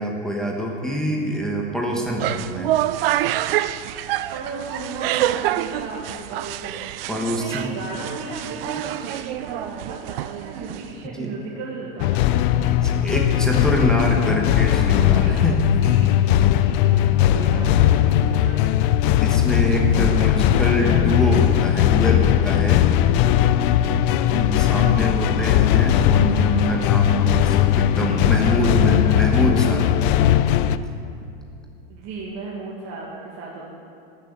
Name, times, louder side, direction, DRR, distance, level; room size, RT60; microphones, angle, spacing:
voice 1, 0.0-2.7 7.1-7.7 11.0-11.3 12.8-15.6 19.1-22.8 24.3-29.9, equal, ahead, -1 dB, 1.2 m, -25 dB
sound 1, 2.0-11.1, right 13 dB, 80° right, 0.5 m, -27 dB
voice 2, 4.3-12.8 15.1-18.7 23.7-24.2 31.9-33.7, right 3 dB, 45° right, -5 dB, 2.1 m, -36 dB
sound 2, 12.0-30.8, left 11 dB, 60° left, 0.5 m, -18 dB
13.0 x 6.7 x 8.6 m, 2.6 s
supercardioid pair, 130°, 29 cm